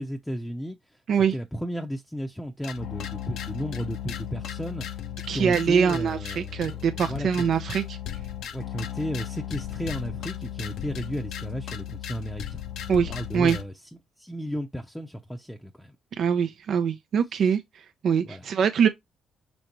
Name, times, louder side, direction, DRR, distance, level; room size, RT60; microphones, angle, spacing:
voice 1, 0.0-1.0 1.3-7.5 8.5-13.7 14.2-16.0 18.2-18.5, equal, 5° left, 0.6 m, -34 dB
sound 1, 2.6-13.6, left 11 dB, 75° left, 0.6 m, -36 dB
voice 2, 5.3-8.0 12.9-13.6 16.2-18.9, right 7 dB, 65° right, 0.5 m, -24 dB
5.2 x 3.4 x 2.9 m
cardioid pair, 90°, 0 cm